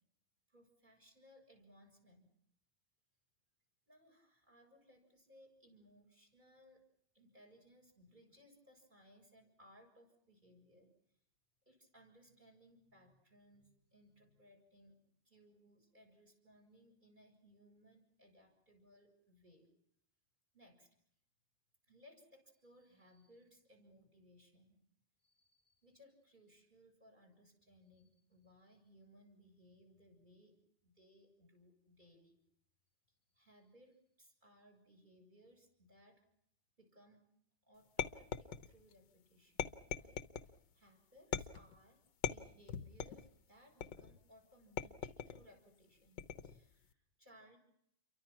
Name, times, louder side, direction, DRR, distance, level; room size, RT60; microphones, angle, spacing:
voice 1, 0.5-2.3 3.9-6.8 7.1-10.9 11.7-14.9 15.3-19.7 20.5-20.9 21.9-24.8 25.2-30.6 30.8-32.4 33.4-36.2 36.8-37.2 37.6-40.2 40.7-42.0 42.3-47.6, equal, 25° right, 3 dB, 7.5 m, -65 dB
sound 1, 38.0-38.9 39.6-40.5 41.3-41.8 42.2-43.3 43.8-44.2 44.8-45.4 46.2-46.6, left 8 dB, 75° left, 1.8 m, -41 dB
29.5 x 24.0 x 6.1 m, 0.73 s
omnidirectional pair, 2.0 m